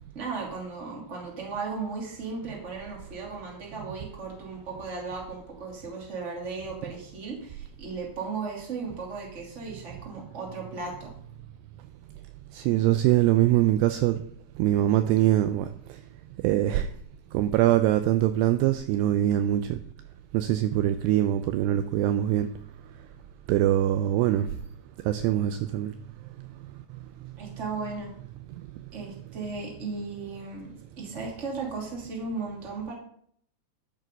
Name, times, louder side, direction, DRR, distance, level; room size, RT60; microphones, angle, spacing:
voice 1, 0.1-11.1 27.4-28.1 28.9-30.7 31.0-32.9, right 4 dB, 20° right, -1 dB, 2.1 m, -36 dB
voice 2, 12.5-14.2 14.6-15.7 16.4-16.9 17.3-19.8 20.3-22.5 23.5-24.5 25.1-25.9, right 13 dB, 85° right, 10 dB, 2.4 m, -23 dB
12.5 x 6.6 x 5.3 m, 0.62 s
omnidirectional pair, 5.3 m